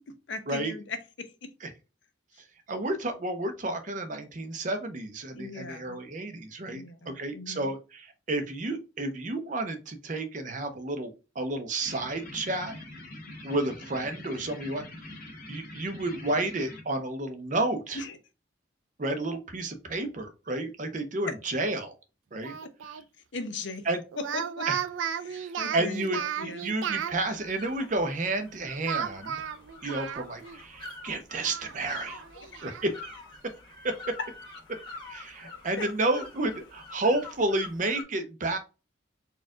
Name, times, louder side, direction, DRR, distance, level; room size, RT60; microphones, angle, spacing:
voice 1, 0.1-1.5 5.3-6.0 6.7-7.7 17.9-18.2 21.3-21.4 23.3-23.9 24.2-24.7 25.2-26.7 32.5-32.6 35.4-35.9, left 3 dB, 70° left, 0.7 m, -38 dB
voice 2, 2.7-12.7 13.4-14.8 15.5-18.0 19.0-21.9 22.3-22.6 23.9-24.0 24.7-24.8 25.4-29.4 29.8-32.2 32.6-33.1 35.1-38.6, right 2 dB, 40° right, 0.6 m, -31 dB
sound 1, 11.8-16.8, left 1 dB, 45° left, 1.4 m, -44 dB
Speech, 22.4-23.0 24.1-27.2 28.9-30.6 30.9-31.0 31.4-32.9, right 8 dB, 80° right, 0.3 m, -34 dB
sound 2, 27.2-38.0, left 3 dB, 20° left, 1.3 m, -46 dB
4.3 x 2.4 x 3.6 m
head